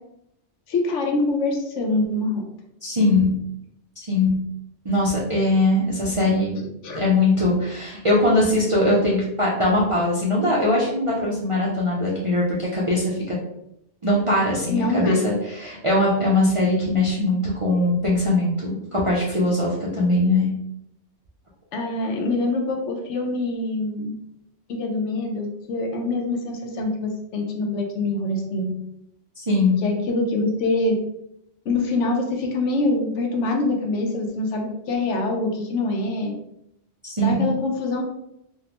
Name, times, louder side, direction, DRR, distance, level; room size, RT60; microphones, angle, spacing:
voice 1, 0.7-2.4 6.6-7.0 14.7-15.2 21.7-24.1 24.7-28.7 29.8-31.0 31.7-36.3 37.2-38.0, left 2 dB, 80° left, 3 dB, 1.0 m, -25 dB
voice 2, 2.8-3.3 4.0-4.3 4.8-6.6 7.0-13.4 14.0-20.5 29.4-29.8 37.0-37.4, left 2 dB, 45° right, -6 dB, 0.4 m, -21 dB
3.6 x 2.1 x 2.9 m, 0.79 s
omnidirectional pair, 1.3 m